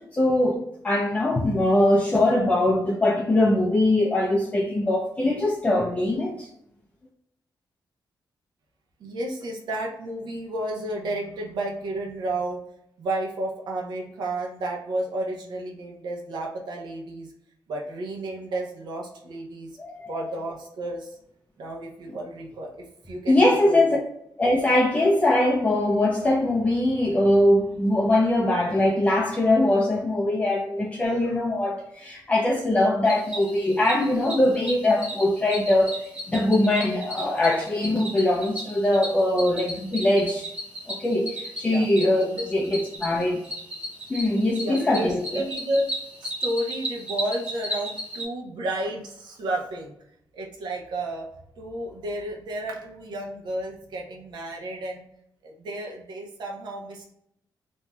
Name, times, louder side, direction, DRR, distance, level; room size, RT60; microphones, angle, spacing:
voice 1, 0.1-6.5 19.8-20.2 23.3-24.0 24.4-40.5 40.9-43.4 44.1-45.4, left 1 dB, 20° left, -3 dB, 0.4 m, -22 dB
voice 2, 9.0-12.6 13.0-17.3 17.7-19.7 20.1-21.1 21.6-22.7 23.1-24.0 41.6-41.9 42.3-42.5 43.2-43.3 44.5-46.0 46.2-49.9 50.3-51.3 51.6-55.0 55.4-57.1, right 1 dB, 75° right, -1 dB, 0.7 m, -32 dB
Cricket, 33.0-48.2, equal, 15° right, 0.8 m, -35 dB
2.6 x 2.2 x 3.0 m, 0.74 s
wide cardioid pair, 140°, 8 cm